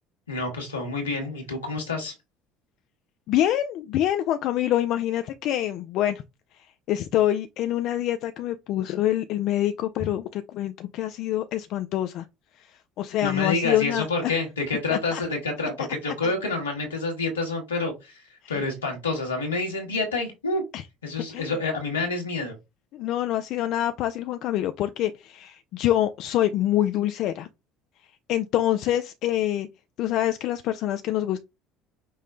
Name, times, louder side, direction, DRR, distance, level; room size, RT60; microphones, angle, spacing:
voice 1, 0.3-2.1 13.2-20.6 21.0-22.5, left 3 dB, 90° left, 1.4 m, -28 dB
voice 2, 3.3-6.2 6.9-12.3 12.6-12.7 13.0-14.3 14.9-15.2 15.8-15.9 16.2-16.3 18.4-18.6 20.7-20.8 21.3-21.5 22.9-27.5 28.3-29.7 30.0-31.4, left 12 dB, 60° left, 0.3 m, -26 dB
5.4 x 2.1 x 3.7 m
hypercardioid pair, 60°, 0 cm